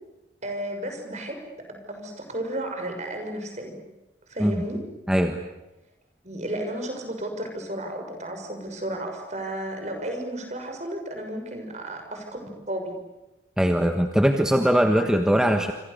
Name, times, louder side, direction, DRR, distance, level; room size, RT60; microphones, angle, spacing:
voice 1, 0.4-3.8 4.3-4.8 6.2-13.0, right 1 dB, 40° right, 4 dB, 6.3 m, -33 dB
voice 2, 5.1-5.4 13.6-15.7, equal, 5° right, 5 dB, 1.4 m, -21 dB
27.5 x 27.0 x 6.9 m, 1.0 s
head